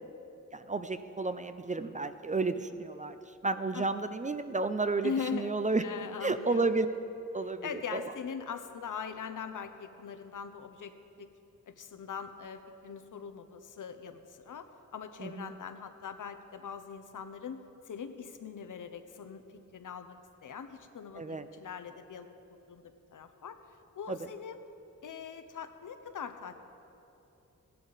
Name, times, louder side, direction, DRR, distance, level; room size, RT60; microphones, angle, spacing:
voice 1, 0.5-3.2 3.4-5.8 6.2-6.9 7.3-8.0 15.2-15.5 21.2-21.5 24.1-24.2, right 3 dB, 25° right, 10 dB, 0.4 m, -32 dB
voice 2, 5.0-5.6 5.8-6.7 7.6-11.3 11.7-14.7 14.9-17.6 17.9-22.3 22.7-22.8 23.1-23.6 23.9-24.6 25.0-26.6, left 7 dB, 75° left, 9 dB, 0.8 m, -41 dB
16.5 x 11.0 x 4.0 m, 3.0 s
wide cardioid pair, 115°, 31 cm